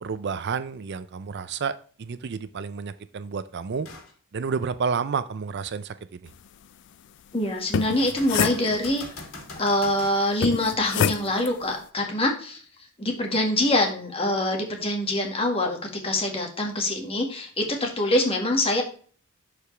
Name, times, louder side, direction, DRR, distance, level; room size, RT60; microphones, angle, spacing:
voice 1, 0.0-3.9 4.3-6.3, right 5 dB, 50° right, 0.4 m, -30 dB
sound 1, 3.8-4.1 4.7-4.8 8.0-10.2 13.9-14.0, left 2 dB, 70° left, 2.7 m, -42 dB
voice 2, 7.3-9.0 9.6-12.6 13.0-18.8, left 1 dB, 25° left, 1.8 m, -25 dB
sound 2, 7.6-9.2 10.4-11.5, left 7 dB, 55° left, 0.3 m, -27 dB
11.5 x 4.9 x 3.3 m
head